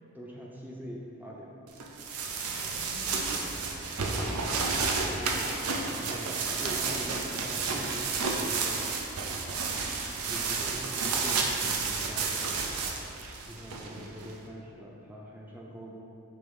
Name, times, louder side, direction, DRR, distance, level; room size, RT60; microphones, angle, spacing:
voice 1, 0.1-1.5 2.0-2.4 4.9-8.9 10.2-12.6 13.5-16.0, equal, 10° right, -3 dB, 0.5 m, -44 dB
sound 1, 1.8-14.3, right 4 dB, 90° right, 0.6 m, -31 dB
voice 2, 2.4-4.5, left 2 dB, 85° left, -2 dB, 0.9 m, -49 dB
5.3 x 3.5 x 5.1 m, 2.6 s
head